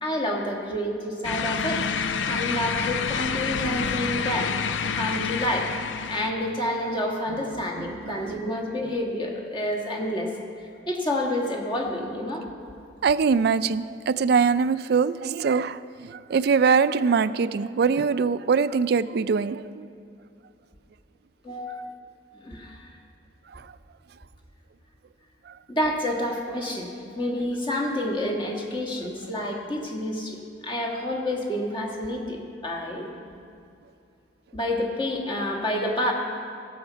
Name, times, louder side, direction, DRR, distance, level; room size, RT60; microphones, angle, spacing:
voice 1, 0.0-1.9 2.3-5.7 6.1-10.3 10.6-12.4 21.4-21.9 22.3-23.0 25.7-33.1 34.5-36.1, left 1 dB, 25° left, 1 dB, 1.5 m, -29 dB
sound 1, 1.2-6.3, left 6 dB, 90° left, 0.5 m, -28 dB
voice 2, 7.8-8.4 13.0-19.9 23.5-23.7 25.5-25.6, right 5 dB, 60° right, 14 dB, 0.3 m, -23 dB
15.5 x 7.2 x 5.6 m, 2.5 s
head